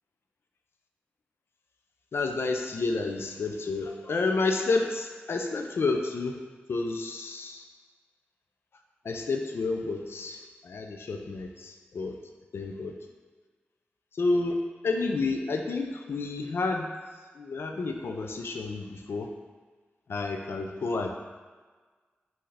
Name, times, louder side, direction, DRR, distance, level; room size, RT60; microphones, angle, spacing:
voice 1, 2.1-6.4 6.7-7.6 9.0-12.2 12.5-12.9 14.1-14.6 14.8-16.9 17.3-19.3 20.1-21.1, left 3 dB, 75° left, 3 dB, 0.4 m, -30 dB
5.6 x 2.7 x 3.3 m, 1.4 s
cardioid pair, 55°, 4 cm